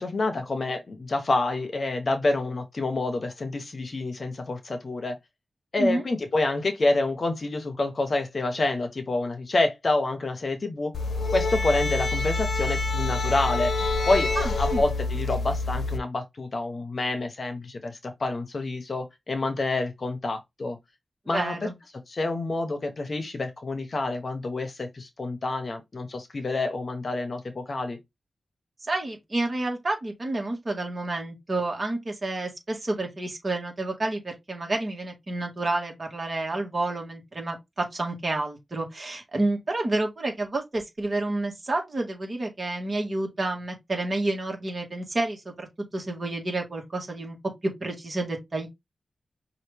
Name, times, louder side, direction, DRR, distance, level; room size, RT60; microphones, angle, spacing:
voice 1, 0.0-5.2 5.7-10.9 11.3-13.7 14.1-14.3 14.6-20.8 21.3-21.5 22.1-28.0, left 2 dB, 40° left, 0.9 m, -28 dB
sound 1, 10.9-16.0, left 3 dB, 70° left, 0.8 m, -27 dB
voice 2, 14.4-14.8 21.3-21.7 28.9-45.7 45.9-47.4 47.6-48.7, right 2 dB, 35° right, 1.8 m, -29 dB
5.6 x 2.6 x 3.4 m
wide cardioid pair, 140°, 0 cm